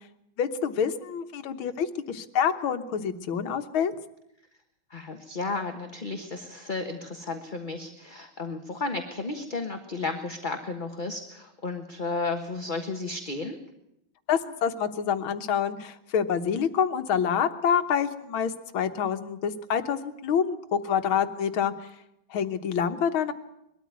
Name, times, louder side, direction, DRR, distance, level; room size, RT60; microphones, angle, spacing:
voice 1, 0.4-3.9 14.3-21.9 22.3-23.3, left 7 dB, 85° left, 9 dB, 2.0 m, -27 dB
voice 2, 4.9-13.6, left 3 dB, 25° left, 5 dB, 1.3 m, -33 dB
21.5 x 13.5 x 9.5 m, 0.83 s
omnidirectional pair, 2.2 m